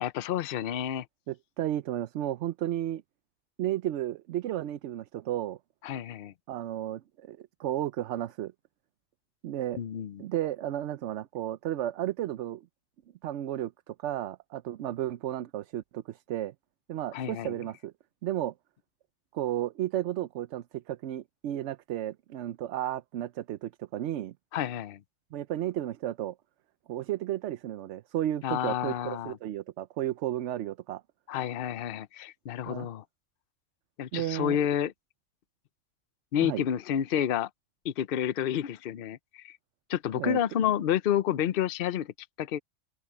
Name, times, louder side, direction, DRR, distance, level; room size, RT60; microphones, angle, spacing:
voice 1, 0.0-1.1 5.8-6.3 9.8-10.2 17.1-17.5 24.5-25.0 28.4-29.4 31.3-33.0 34.0-34.9 36.3-37.5 37.8-39.6 39.9-42.1 42.4-42.6, left 10 dB, 55° left, 0.8 m, -29 dB
voice 2, 1.3-3.0 3.6-5.6 6.5-8.5 9.4-9.8 10.2-12.7 13.2-16.5 16.9-17.9 18.2-18.5 19.3-24.3 25.3-26.3 26.9-31.0 32.7-32.9 34.1-34.6 36.4-36.6 40.2-40.4, right 12 dB, 75° right, 0.9 m, -33 dB
open air
omnidirectional pair, 1.3 m